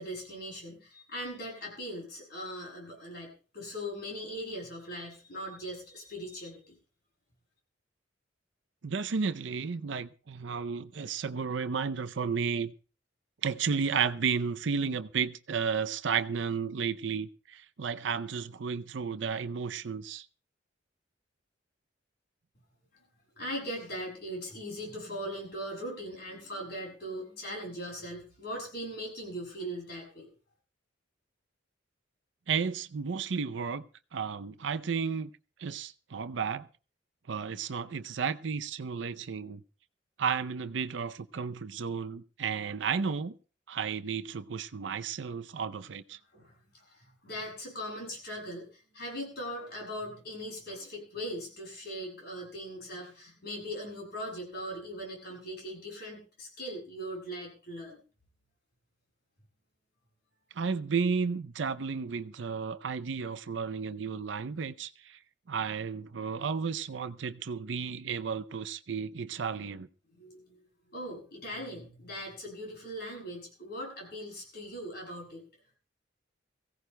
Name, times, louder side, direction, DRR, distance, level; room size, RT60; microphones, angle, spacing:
voice 1, 0.0-6.7 23.4-30.3 46.3-58.0 70.1-70.6 70.9-75.4, equal, 60° left, 7.7 m, -40 dB
voice 2, 8.8-12.7 13.4-20.3 32.5-33.8 34.1-35.3 35.6-36.7 37.3-39.6 40.2-43.3 43.7-46.2 60.6-65.2 65.5-69.9, right 6 dB, 75° right, 0.6 m, -33 dB
23.5 x 16.0 x 2.2 m
head